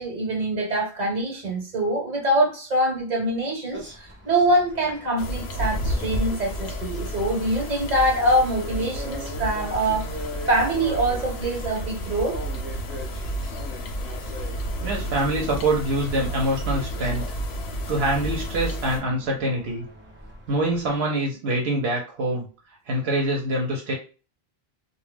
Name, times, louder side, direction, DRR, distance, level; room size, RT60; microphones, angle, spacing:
voice 1, 0.0-10.1 10.5-12.4, right 1 dB, 45° right, 1.1 m, -24 dB
sound 1, 3.7-21.0, equal, 15° right, 0.4 m, -41 dB
sound 2, 5.2-19.0, equal, 75° left, 0.8 m, -31 dB
voice 2, 14.8-17.2 17.9-19.8 20.5-22.5 22.9-23.9, right 1 dB, 75° right, 0.9 m, -25 dB
2.2 x 2.1 x 3.2 m
omnidirectional pair, 1.1 m